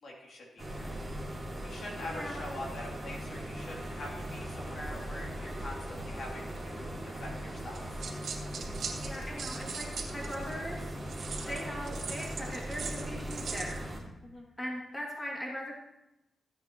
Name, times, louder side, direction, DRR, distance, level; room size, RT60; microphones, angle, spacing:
voice 1, 0.0-0.9 1.6-8.0 14.2-14.4, left 1 dB, 65° left, -2 dB, 3.0 m, -44 dB
sound 1, 0.6-14.0, right 1 dB, 10° right, 2.7 m, -39 dB
voice 2, 2.1-2.6 9.0-11.0 11.5-13.8 14.6-15.8, equal, 15° left, -3 dB, 2.6 m, -40 dB
sound 2, 7.7-10.5 11.1-13.8, right 5 dB, 75° right, 2.5 m, -40 dB
15.5 x 9.3 x 3.1 m, 0.92 s
cardioid pair, 100°, 0 cm